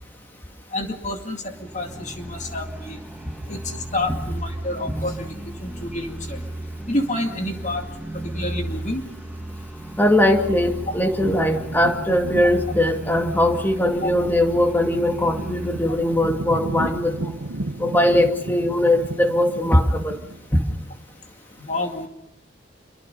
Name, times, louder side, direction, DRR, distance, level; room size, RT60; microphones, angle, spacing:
voice 1, 0.7-3.0 3.5-5.3 5.6-6.4 6.9-7.8 8.3-9.0 10.9-11.0 14.0-14.1 21.6-22.1, left 1 dB, 35° left, 4 dB, 2.2 m, -28 dB
sound 1, 1.4-16.2, right 1 dB, 5° right, 1.4 m, -35 dB
voice 2, 10.0-17.3 17.8-20.2 20.5-20.6, left 1 dB, 10° left, 3 dB, 2.3 m, -20 dB
sound 2, 10.7-20.6, right 2 dB, 80° right, 1.1 m, -34 dB
28.0 x 24.0 x 5.4 m, 0.84 s
head